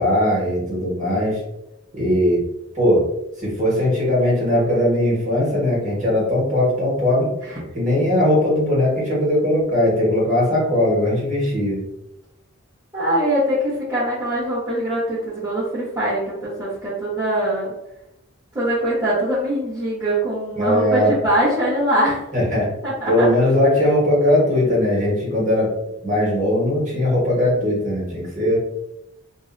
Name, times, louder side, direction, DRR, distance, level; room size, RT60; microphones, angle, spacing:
voice 1, 0.0-1.4 1.9-2.4 2.7-3.0 3.4-7.3 7.7-11.8 20.5-21.1 22.3-22.7 23.1-25.7 26.0-28.6, left 1 dB, 35° right, -5 dB, 1.4 m, -19 dB
voice 2, 12.9-17.7 18.5-22.2 22.8-23.3, right 1 dB, 15° right, -12 dB, 0.8 m, -22 dB
3.2 x 2.6 x 2.5 m, 0.87 s
head